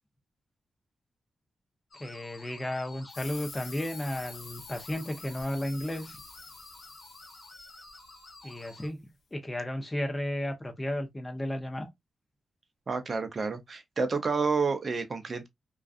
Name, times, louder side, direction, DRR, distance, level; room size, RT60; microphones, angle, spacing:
sound 1, 1.9-8.9, left 2 dB, 35° left, 0.9 m, -51 dB
voice 1, 2.0-6.2 8.4-11.9, left 1 dB, 15° left, 0.6 m, -34 dB
sound 2, 3.1-8.4, left 5 dB, 70° left, 0.7 m, -48 dB
voice 2, 12.9-15.5, right 4 dB, 40° right, 0.5 m, -29 dB
2.5 x 2.3 x 2.3 m
wide cardioid pair, 130°, 0 cm